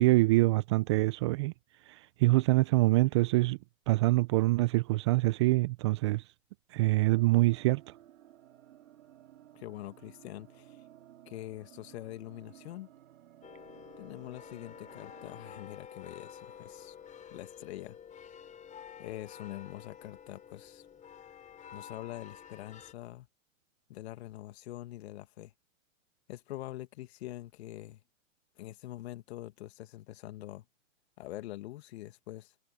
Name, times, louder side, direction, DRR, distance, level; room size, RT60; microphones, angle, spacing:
voice 1, 0.0-1.5 1.9-3.6 3.9-6.2 6.7-7.8, right 20 dB, 25° right, 0.4 m, -25 dB
sound 1, 6.8-15.6, right 12 dB, 65° right, 3.3 m, -57 dB
voice 2, 9.5-10.8 11.2-12.9 14.0-17.0 17.3-18.0 19.0-20.9 21.7-23.3 23.9-25.5 26.3-28.0 28.6-30.6 31.2-32.5, left 15 dB, 50° left, 2.1 m, -44 dB
sound 2, 13.4-22.9, left 8 dB, 20° left, 6.1 m, -50 dB
hypercardioid pair, 125°, 40 cm